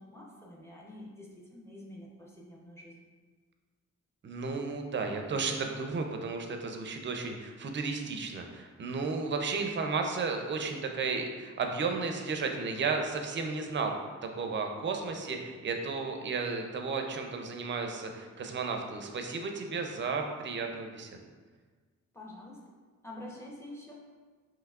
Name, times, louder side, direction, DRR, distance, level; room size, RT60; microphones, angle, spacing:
voice 1, 0.0-3.0 22.1-22.6 23.0-24.0, left 1 dB, 10° left, -4 dB, 0.6 m, -47 dB
voice 2, 4.2-14.0 14.4-21.2, right 4 dB, 40° right, 3 dB, 0.4 m, -33 dB
5.7 x 3.0 x 2.3 m, 1.5 s
wide cardioid pair, 170°, 30 cm